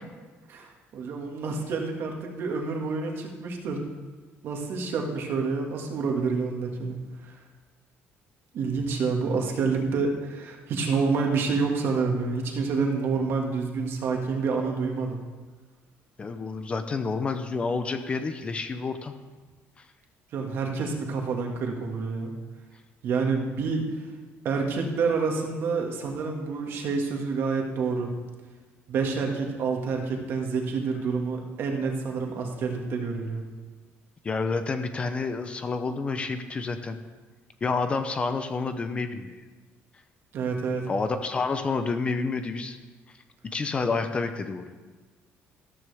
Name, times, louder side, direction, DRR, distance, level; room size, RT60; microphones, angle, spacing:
voice 1, 0.5-3.8 4.4-7.4 8.5-15.2 20.3-22.3 23.0-23.9 24.4-28.1 28.9-33.4 40.3-40.9, right 4 dB, 50° right, 2 dB, 1.9 m, -28 dB
voice 2, 16.2-19.1 19.8-19.9 34.2-37.0 37.6-39.4 40.9-42.8 43.4-44.7, left 4 dB, 20° left, 8 dB, 0.6 m, -29 dB
14.0 x 13.5 x 3.5 m, 1.3 s
cardioid pair, 160°, 5 cm